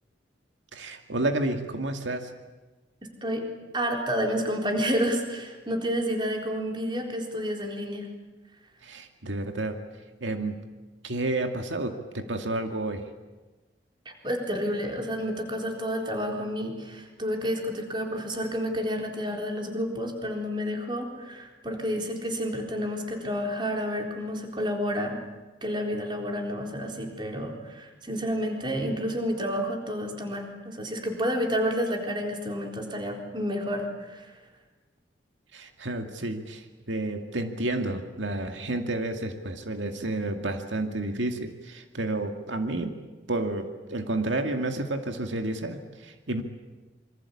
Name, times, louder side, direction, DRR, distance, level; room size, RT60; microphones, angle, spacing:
voice 1, 0.7-2.3 8.8-9.8 10.2-10.6 11.0-13.0 35.5-42.9 43.3-46.4, right 2 dB, 90° right, 5 dB, 2.2 m, -30 dB
voice 2, 3.7-8.1 14.1-25.2 25.6-34.3, equal, 25° right, 2 dB, 4.0 m, -30 dB
27.0 x 24.5 x 8.6 m, 1.2 s
head